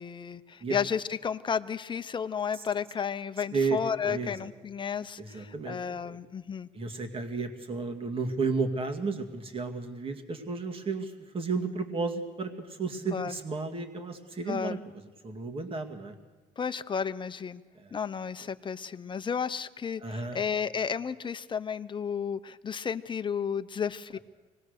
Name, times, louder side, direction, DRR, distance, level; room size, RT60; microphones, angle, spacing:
voice 1, 0.0-6.7 13.1-13.4 14.5-14.8 16.6-17.6 17.9-24.2, left 7 dB, 30° left, 11 dB, 0.8 m, -32 dB
voice 2, 3.5-4.3 5.2-6.0 6.7-14.8 15.2-16.1 17.8-17.9 20.0-20.4, right 4 dB, 35° right, 5 dB, 2.3 m, -33 dB
25.0 x 19.5 x 6.7 m, 1.3 s
cardioid pair, 110°, 17 cm